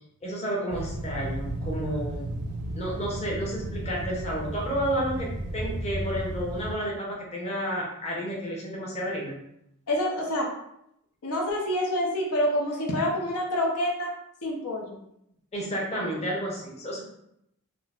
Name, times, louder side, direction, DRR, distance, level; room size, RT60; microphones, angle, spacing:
voice 1, 0.2-2.3 2.7-9.4 15.5-17.0, equal, 30° left, -4 dB, 0.6 m, -31 dB
sound 1, 0.7-6.7, right 1 dB, 85° right, 0.4 m, -34 dB
voice 2, 9.9-10.5 11.2-14.1 14.4-15.0, left 1 dB, 85° left, -1 dB, 0.6 m, -27 dB
3.7 x 2.0 x 2.3 m, 0.78 s
head